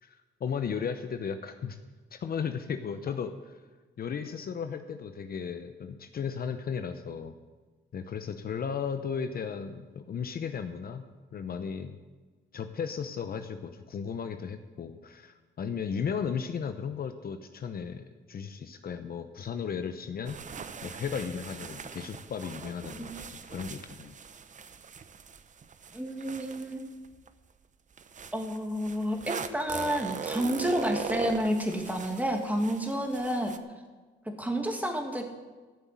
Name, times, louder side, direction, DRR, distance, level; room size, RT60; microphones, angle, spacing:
voice 1, 0.0-1.8 2.1-3.5 4.0-7.4 7.9-11.0 11.3-12.0 12.5-20.4 20.8-24.1, left 6 dB, 50° left, 9 dB, 0.9 m, -35 dB
sound 1, 20.2-27.3 28.0-33.6, right 6 dB, 40° right, 0.8 m, -40 dB
voice 2, 25.9-26.8 28.3-33.5 34.4-35.2, equal, 10° right, 3 dB, 2.3 m, -30 dB
13.5 x 7.3 x 8.4 m, 1.4 s
cardioid pair, 90°, 20 cm